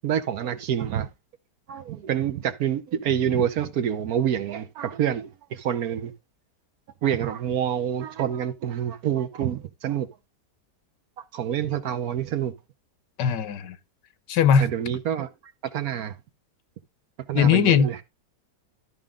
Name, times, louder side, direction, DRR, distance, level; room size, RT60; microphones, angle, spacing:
voice 1, 0.0-1.1 1.7-6.1 7.0-10.1 11.2-12.5 14.6-15.3 15.6-16.2 17.3-18.0, right 9 dB, 65° right, 1.2 m, -27 dB
voice 2, 13.2-13.8 14.3-14.7 17.3-17.9, left 7 dB, 80° left, 1.4 m, -19 dB
12.5 x 5.3 x 3.6 m
omnidirectional pair, 1.8 m